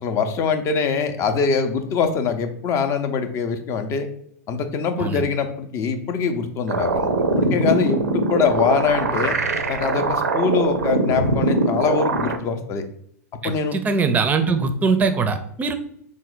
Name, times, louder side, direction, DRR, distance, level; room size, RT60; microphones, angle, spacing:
voice 1, 0.0-4.1 4.5-7.1 7.4-9.4 9.7-12.8 13.4-13.8, left 5 dB, 35° left, 7 dB, 0.5 m, -23 dB
sound 1, 6.7-12.4, right 3 dB, 85° right, 0.4 m, -22 dB
voice 2, 13.4-15.7, right 4 dB, 20° right, 8 dB, 0.5 m, -21 dB
4.3 x 2.1 x 3.9 m, 0.69 s
hypercardioid pair, 95°, 8 cm